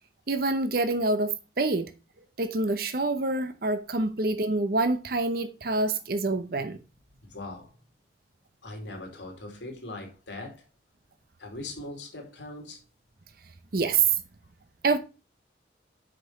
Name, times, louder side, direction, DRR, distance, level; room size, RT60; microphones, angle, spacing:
voice 1, 0.3-1.9 2.4-6.8 13.7-14.1 14.8-15.0, right 3 dB, 55° right, 0.8 m, -26 dB
voice 2, 7.2-7.8 8.6-10.7 11.4-12.8, left 2 dB, 90° left, 2.8 m, -40 dB
6.6 x 5.5 x 5.4 m
head